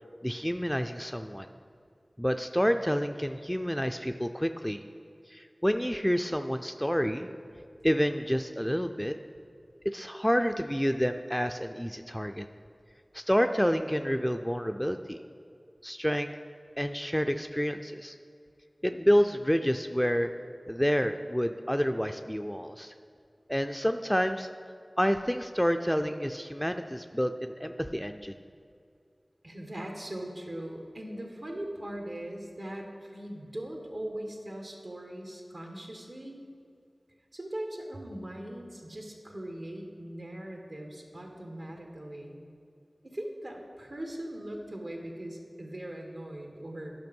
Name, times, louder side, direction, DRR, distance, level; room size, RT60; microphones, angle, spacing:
voice 1, 0.2-1.5 2.2-4.8 5.3-7.3 7.8-9.1 9.9-12.5 13.1-15.2 15.8-16.3 16.8-18.2 18.8-20.3 20.7-22.9 23.5-24.5 25.0-28.3, equal, 5° left, 6 dB, 0.3 m, -28 dB
voice 2, 29.4-36.3 37.3-42.4 43.0-46.9, right 1 dB, 70° right, 1 dB, 1.4 m, -40 dB
10.5 x 6.0 x 5.3 m, 2.4 s
wide cardioid pair, 40°, 0 cm